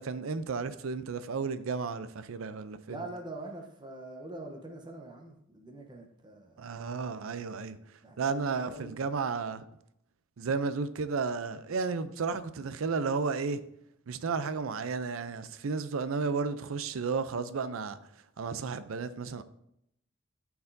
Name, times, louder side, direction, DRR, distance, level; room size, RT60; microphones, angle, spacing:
voice 1, 0.0-3.0 6.6-7.8 8.2-9.6 10.4-13.6 14.1-18.0 18.4-19.4, right 4 dB, 85° right, 0.5 m, -33 dB
voice 2, 2.9-6.7 8.0-9.0, right 2 dB, 20° right, 0.9 m, -44 dB
12.0 x 4.7 x 2.7 m
head